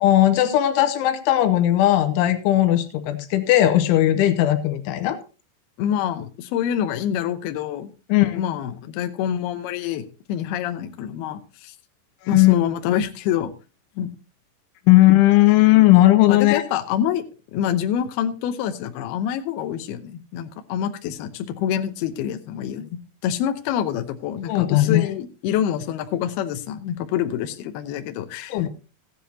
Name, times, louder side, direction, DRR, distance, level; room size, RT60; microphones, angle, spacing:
voice 1, 0.0-5.2 8.1-8.5 12.2-12.5 14.9-16.6 24.5-25.1 28.5-28.7, left 15 dB, 90° left, 9 dB, 3.5 m, -17 dB
voice 2, 5.8-7.9 8.4-11.7 12.3-13.5 14.0-14.1 16.3-17.2 17.5-28.7, left 10 dB, 75° left, 7 dB, 2.5 m, -26 dB
15.5 x 10.0 x 2.9 m, 0.33 s
omnidirectional pair, 5.3 m